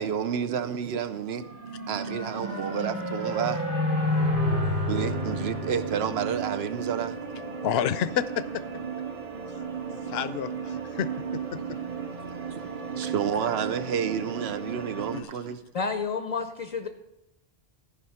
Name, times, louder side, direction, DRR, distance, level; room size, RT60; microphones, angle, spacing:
voice 1, 0.0-7.2 9.2-9.3 11.5-15.6, right 8 dB, 75° right, 0.9 m, -31 dB
sound 1, 1.3-6.8, left 1 dB, 55° right, 1.9 m, -29 dB
sound 2, 4.9-15.2, right 6 dB, 35° right, 0.9 m, -35 dB
voice 2, 7.6-8.6 10.1-10.5 11.0-11.8 13.0-13.1 15.1-15.3, left 10 dB, 75° left, 0.8 m, -29 dB
voice 3, 15.7-16.9, left 5 dB, 45° left, 0.5 m, -30 dB
14.0 x 5.3 x 5.6 m
omnidirectional pair, 1.1 m